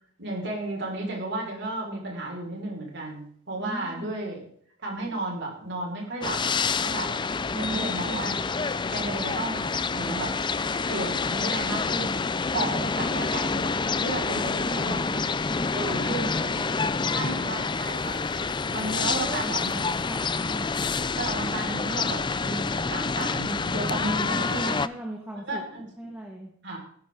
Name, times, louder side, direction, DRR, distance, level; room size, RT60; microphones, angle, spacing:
voice 1, 0.2-4.4 4.8-6.4 6.8-7.2 7.6-8.4 8.9-10.4 10.9-12.2 12.5-15.2 15.7-16.3 17.1-18.2 18.7-19.8 20.1-20.8 21.2-24.8 25.5-26.1 26.6-26.8, right 2 dB, 60° right, 0 dB, 5.4 m, -33 dB
voice 2, 3.6-4.1 7.5-8.3 12.6-12.8 14.3-17.5 18.9-19.6 20.0-20.3 24.3-25.6 26.0-26.5, right 1 dB, 10° right, -1 dB, 1.9 m, -38 dB
sound 1, 6.2-24.9, left 4 dB, 25° left, 0.5 m, -28 dB
17.5 x 11.5 x 3.9 m, 0.62 s
head